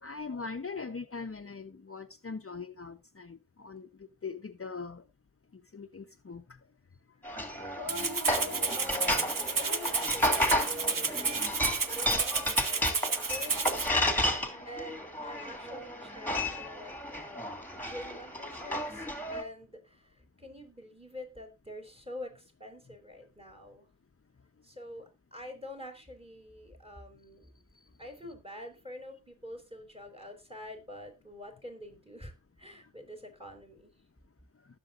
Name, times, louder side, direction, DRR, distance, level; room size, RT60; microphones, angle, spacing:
voice 1, 0.0-5.0 5.5-6.6 9.7-9.8 14.5-14.7, left 4 dB, 45° left, 0.8 m, -41 dB
sound 1, 7.2-19.4, left 1 dB, 5° left, 2.6 m, -32 dB
voice 2, 7.7-11.6 12.0-13.8 14.6-23.9 24.6-27.5 28.0-32.3 32.6-34.0, left 2 dB, 15° right, 4.8 m, -46 dB
Rattle (instrument), 7.9-13.9, right 5 dB, 80° right, 1.1 m, -31 dB
19.5 x 7.0 x 2.5 m
wide cardioid pair, 45°, 33 cm